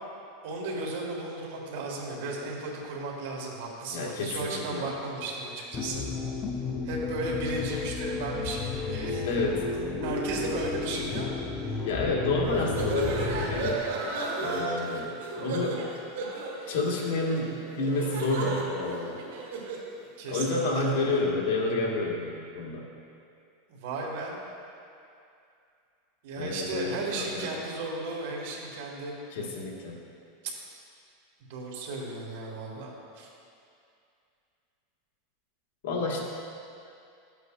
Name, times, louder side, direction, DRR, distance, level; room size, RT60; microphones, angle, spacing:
voice 1, 0.4-6.1 6.8-9.3 9.8-11.3 11.6-11.8 20.2-21.3 23.7-24.3 26.2-29.1 31.5-33.3, right 2 dB, 65° right, -2 dB, 1.8 m, -35 dB
voice 2, 3.9-4.9 9.2-9.7 11.8-13.9 14.4-15.9 16.7-19.2 20.3-22.9 26.4-27.5 29.3-30.0 35.8-36.2, left 2 dB, 80° left, -2 dB, 1.5 m, -29 dB
sound 1, 5.7-13.7, left 4 dB, 25° left, 0.5 m, -33 dB
sound 2, 12.4-19.9, right 3 dB, 90° right, 1.9 m, -34 dB
12.5 x 8.0 x 2.5 m, 2.5 s
supercardioid pair, 160°, 0 cm